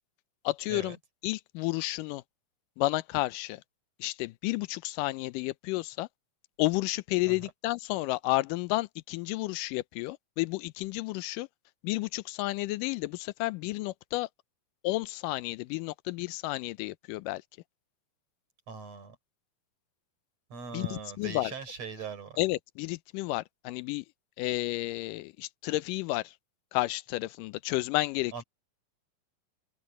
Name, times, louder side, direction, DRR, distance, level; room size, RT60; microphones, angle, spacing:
voice 1, 0.4-1.0 1.2-2.2 2.8-3.6 4.0-6.1 6.6-11.5 11.8-14.3 14.8-17.4 20.7-21.5 22.4-24.1 24.4-26.3 26.7-28.4, left 19 dB, 80° left, 2.0 m, -31 dB
voice 2, 18.7-19.2 20.5-22.4 28.3-28.4, right 5 dB, 45° right, 5.5 m, -41 dB
omnidirectional pair, 4.2 m